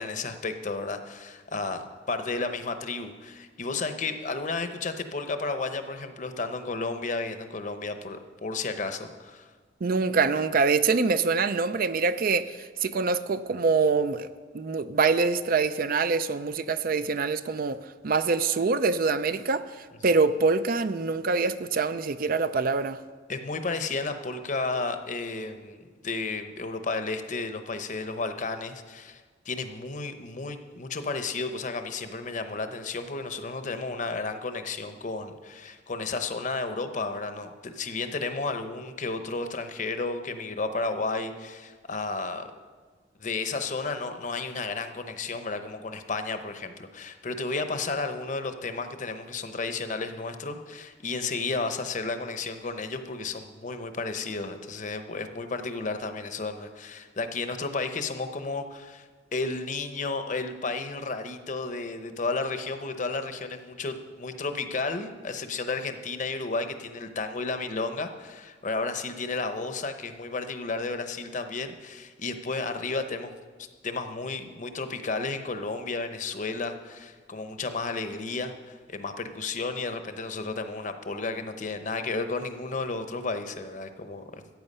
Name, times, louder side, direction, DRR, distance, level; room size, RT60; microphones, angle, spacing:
voice 1, 0.0-9.5 23.3-42.6 43.2-73.3 73.6-84.2, left 3 dB, 45° left, 8 dB, 0.8 m, -32 dB
voice 2, 9.8-14.3 14.5-17.8 18.0-23.0, right 4 dB, 50° right, 12 dB, 0.4 m, -25 dB
14.0 x 9.0 x 5.4 m, 1.5 s
head